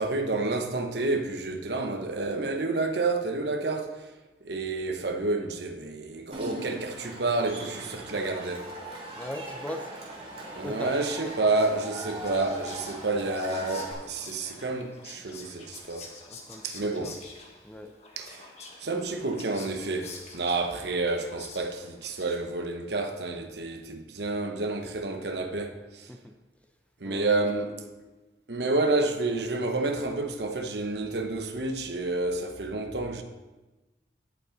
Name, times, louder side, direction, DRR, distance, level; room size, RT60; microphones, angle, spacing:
voice 1, 0.0-4.0 4.4-8.7 10.5-16.1 16.6-17.1 18.2-18.5 18.8-26.1 27.0-27.8 28.5-33.2, right 3 dB, 70° right, 1.0 m, -29 dB
Cheering / Crowd, 6.3-13.9, right 1 dB, 30° right, 2.5 m, -40 dB
voice 2, 9.2-9.9 10.6-11.0 16.3-17.2 17.6-17.9 26.1-26.3 27.0-27.3 27.6-27.9, left 1 dB, 5° left, 0.5 m, -39 dB
Whispering, 10.7-22.7, left 3 dB, 40° left, 1.4 m, -48 dB
17.0 x 5.8 x 4.0 m
head